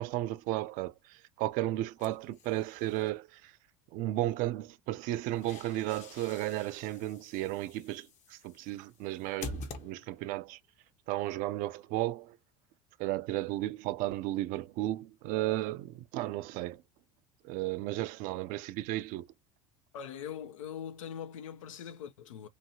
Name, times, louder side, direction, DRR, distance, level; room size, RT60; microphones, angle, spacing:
voice 1, 0.0-3.5 3.9-10.6 11.1-12.4 13.0-16.8 17.4-19.3, right 16 dB, 60° right, 0.5 m, -34 dB
sound 1, 2.0-3.1 5.0-10.4, left 3 dB, 45° left, 0.8 m, -47 dB
voice 2, 19.9-22.5, left 8 dB, 85° left, 0.5 m, -42 dB
2.9 x 2.6 x 2.7 m
hypercardioid pair, 80°, 16 cm